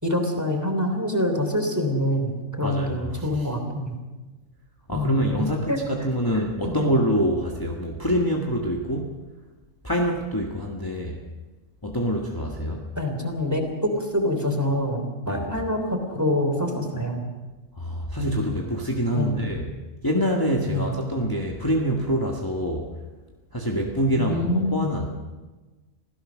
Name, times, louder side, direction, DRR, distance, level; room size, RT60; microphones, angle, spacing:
voice 1, 0.0-4.0 4.9-5.8 6.3-7.0 13.0-17.3 19.1-19.4 20.7-21.0 24.2-25.0, left 1 dB, 15° right, 4 dB, 3.2 m, -26 dB
voice 2, 2.6-3.5 4.9-9.2 9.8-11.2 11.8-12.8 15.3-15.4 17.8-19.7 20.0-22.9 23.5-25.1, equal, 15° left, -1 dB, 1.8 m, -25 dB
26.0 x 16.5 x 6.3 m, 1.2 s
omnidirectional pair, 1.3 m